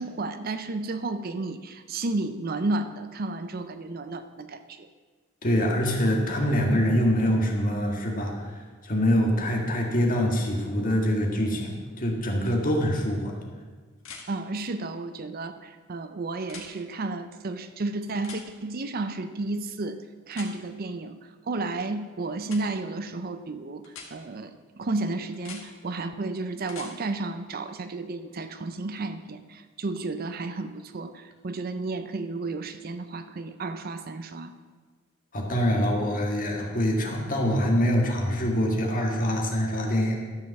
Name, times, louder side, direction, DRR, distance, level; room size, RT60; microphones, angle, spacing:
voice 1, 0.0-4.9 14.3-21.2 21.5-34.5, right 2 dB, 45° right, 10 dB, 0.5 m, -32 dB
voice 2, 5.4-8.5 8.8-13.3 35.3-40.1, equal, 40° left, 1 dB, 1.8 m, -24 dB
sound 1, 12.4-12.5 14.0-14.3 16.4-16.7 18.2-18.4 20.3-20.5 22.4-22.6 23.8-24.1 25.3-25.6 26.6-26.9 29.0-29.1, left 5 dB, 70° left, 1.7 m, -42 dB
13.0 x 5.3 x 7.0 m, 1.4 s
head